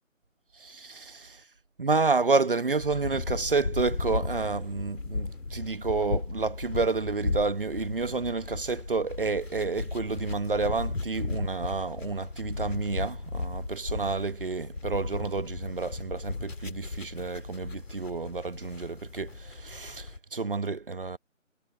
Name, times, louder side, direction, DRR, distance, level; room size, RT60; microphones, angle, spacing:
voice 1, 0.6-1.4 1.8-21.2, right 4 dB, 40° right, 1.2 m, -30 dB
sound 1, 2.8-20.2, left 3 dB, 70° left, 3.2 m, -35 dB
figure-of-eight pair, 165°, 40 cm